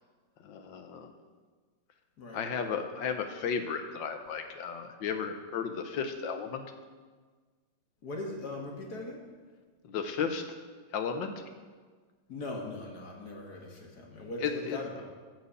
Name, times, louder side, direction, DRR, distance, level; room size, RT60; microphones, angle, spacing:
voice 1, 0.4-1.1 2.3-6.7 9.9-10.4 10.9-11.4 14.4-14.8, left 6 dB, 80° left, 7 dB, 1.7 m, -34 dB
voice 2, 8.0-9.2 12.3-15.1, left 2 dB, 55° left, 0 dB, 2.1 m, -40 dB
13.0 x 4.6 x 8.3 m, 1.5 s
omnidirectional pair, 2.0 m